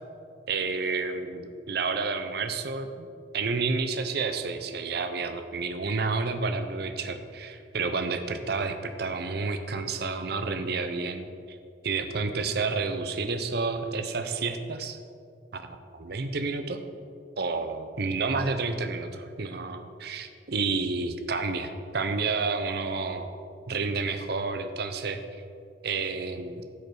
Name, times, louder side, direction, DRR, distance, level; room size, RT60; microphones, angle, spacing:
voice 1, 0.5-3.1 3.3-11.6 11.8-15.0 15.5-15.6 15.9-16.8 17.4-23.3 23.7-25.2 25.8-26.6, right 4 dB, 60° right, 8 dB, 0.7 m, -30 dB
15.5 x 5.2 x 4.7 m, 2.3 s
head